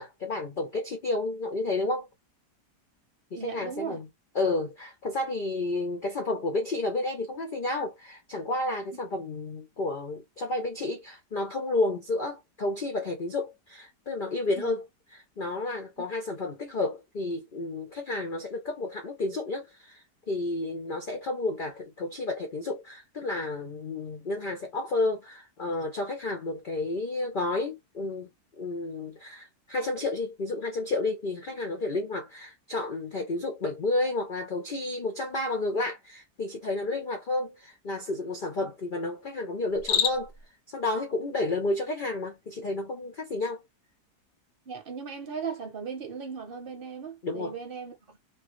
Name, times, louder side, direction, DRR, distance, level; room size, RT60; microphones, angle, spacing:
voice 1, 0.0-2.1 3.3-4.1 4.3-14.8 15.4-40.3 40.7-43.6 47.2-47.6, left 2 dB, 70° left, 0.4 m, -31 dB
voice 2, 3.3-4.0 14.6-14.7 16.0-16.1 38.6-38.7 44.7-48.2, right 6 dB, 40° right, 0.9 m, -37 dB
Cricket, 39.7-40.5, left 9 dB, 85° left, 1.2 m, -28 dB
3.1 x 2.3 x 3.1 m
omnidirectional pair, 1.8 m